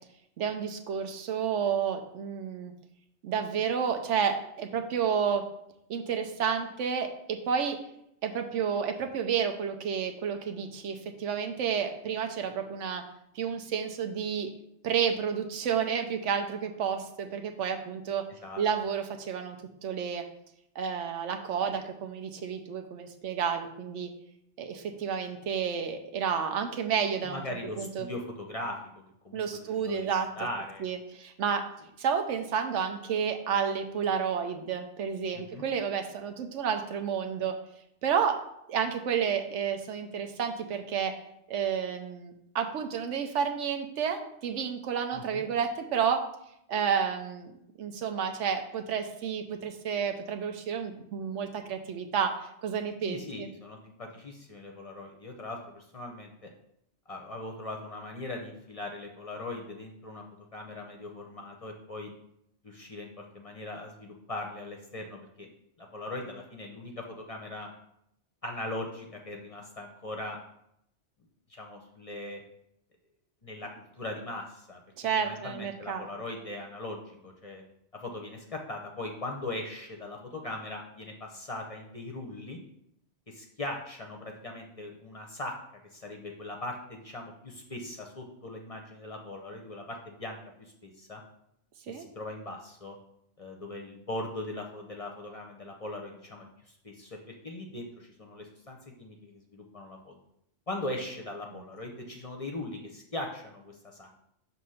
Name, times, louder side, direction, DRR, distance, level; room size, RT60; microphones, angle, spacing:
voice 1, 0.4-2.7 3.2-5.5 5.9-7.8 8.2-13.0 13.3-14.5 14.8-18.3 18.6-19.6 19.8-20.2 20.7-24.1 24.6-28.1 29.3-30.3 30.8-31.7 32.0-37.6 38.0-38.4 38.7-41.1 41.5-46.2 46.7-47.5 47.8-53.5 75.0-76.1 91.9-92.1 101.5-101.6, right 7 dB, 85° right, 6 dB, 1.0 m, -30 dB
voice 2, 27.2-29.4 29.8-30.8 35.3-35.6 45.1-45.4 53.1-56.5 57.1-60.2 60.5-62.1 62.6-65.5 65.8-67.7 68.4-70.4 71.5-72.4 73.4-73.7 74.0-74.8 75.2-77.6 77.9-82.6 83.3-85.5 85.9-91.2 91.9-93.0 93.4-96.5 96.8-100.1 100.7-104.1, left 2 dB, 35° left, 1 dB, 0.7 m, -40 dB
6.2 x 2.8 x 5.6 m, 0.76 s
omnidirectional pair, 1.2 m